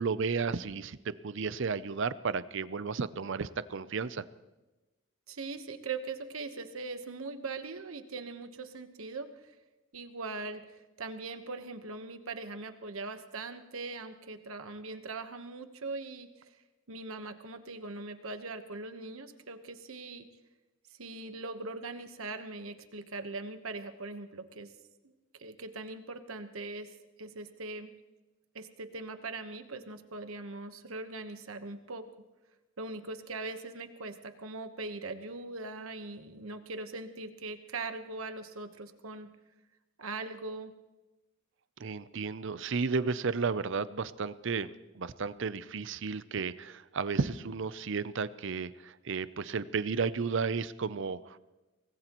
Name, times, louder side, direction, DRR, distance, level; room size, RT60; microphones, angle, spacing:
voice 1, 0.0-4.2 41.8-44.7 44.9-51.4, right 5 dB, 60° right, 15 dB, 0.6 m, -33 dB
voice 2, 5.3-9.6 9.9-16.6 16.9-20.3 20.9-24.7 25.0-25.1 25.4-27.9 28.5-32.0 32.8-39.3 40.0-40.7, right 3 dB, 75° right, 8 dB, 1.1 m, -41 dB
24.0 x 19.0 x 3.0 m, 1.1 s
head